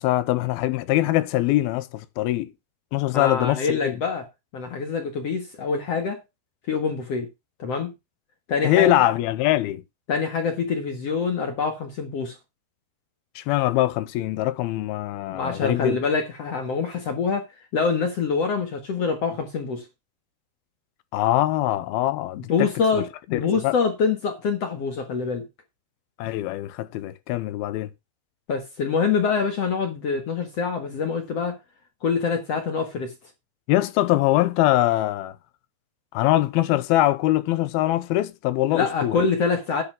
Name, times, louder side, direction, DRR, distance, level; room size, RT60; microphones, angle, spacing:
voice 1, 0.0-2.5 2.9-4.0 8.6-9.8 13.4-16.0 21.1-22.7 23.3-23.7 26.2-27.9 33.7-35.4 36.1-39.2, left 15 dB, 80° left, 2.4 m, -23 dB
voice 2, 3.1-4.2 4.5-6.2 6.7-7.3 7.6-7.9 8.5-9.1 10.1-12.4 15.3-17.5 17.7-19.9 22.5-25.4 28.5-31.6 32.0-33.1 38.7-39.8, left 5 dB, 55° left, 1.8 m, -25 dB
10.5 x 5.6 x 6.0 m
omnidirectional pair, 4.8 m